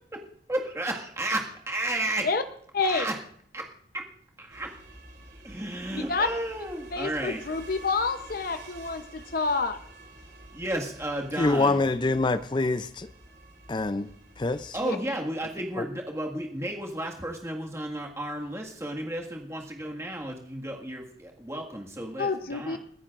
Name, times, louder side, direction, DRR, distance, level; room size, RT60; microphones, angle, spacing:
voice 1, 0.5-2.3 2.8-3.2 3.5-3.7 3.9-4.1 4.4-4.7 5.4-7.4 10.5-11.8 14.7-22.8, right 1 dB, 15° right, 1.8 m, -33 dB
voice 2, 2.7-3.1 5.9-6.3 6.9-9.8 14.8-15.0 22.2-22.8, left 4 dB, 50° left, 0.8 m, -28 dB
sound 1, 4.5-14.9, right 2 dB, 65° right, 3.9 m, -49 dB
voice 3, 11.4-13.1 13.7-14.8 15.8-15.9, left 3 dB, 25° left, 0.4 m, -26 dB
30.0 x 10.0 x 2.5 m
head